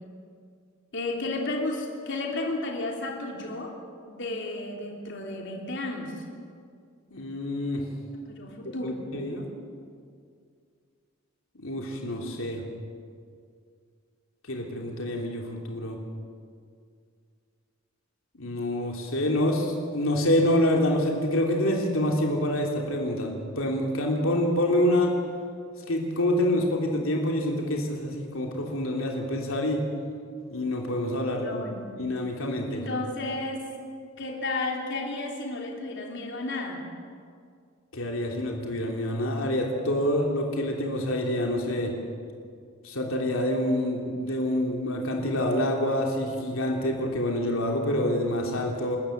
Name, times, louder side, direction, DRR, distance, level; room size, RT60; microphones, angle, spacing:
voice 1, 0.9-3.7 4.1-6.1 8.3-9.0 31.4-31.9 32.7-33.7 34.2-36.8, left 2 dB, 60° left, 1 dB, 3.3 m, -32 dB
voice 2, 7.1-7.8 8.6-9.5 11.5-12.6 14.5-16.0 18.3-25.1 25.9-29.8 30.5-31.6 32.0-32.8 37.9-41.9 42.8-49.0, left 1 dB, 80° left, 0 dB, 3.2 m, -27 dB
28.5 x 13.5 x 9.3 m, 2.2 s
head